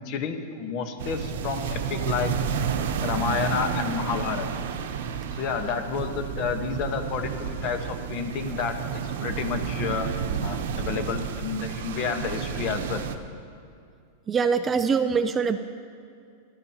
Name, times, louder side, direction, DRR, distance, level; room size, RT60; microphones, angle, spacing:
voice 1, 0.0-2.3 3.0-4.5 5.3-13.0, left 6 dB, 40° left, 7 dB, 1.2 m, -30 dB
sound 1, 1.0-13.2, right 7 dB, 75° right, 0.9 m, -31 dB
voice 2, 14.3-15.6, right 5 dB, 20° right, 10 dB, 0.4 m, -23 dB
20.5 x 12.0 x 2.9 m, 2.4 s
supercardioid pair, 150°, 0 cm